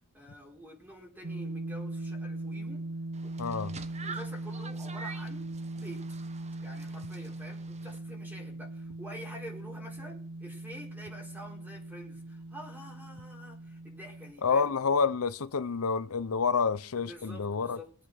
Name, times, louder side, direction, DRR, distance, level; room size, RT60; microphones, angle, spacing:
voice 1, 0.1-2.8 3.2-3.3 4.0-6.1 6.6-14.7 17.0-17.9, equal, 10° right, 4.4 m, -48 dB
sound 1, 1.2-14.3, right 2 dB, 85° right, 1.0 m, -40 dB
sound 2, 3.1-8.0, right 4 dB, 30° right, 1.0 m, -47 dB
voice 2, 3.4-3.7 14.4-17.8, left 5 dB, 70° left, 0.6 m, -28 dB
22.0 x 8.4 x 6.2 m
head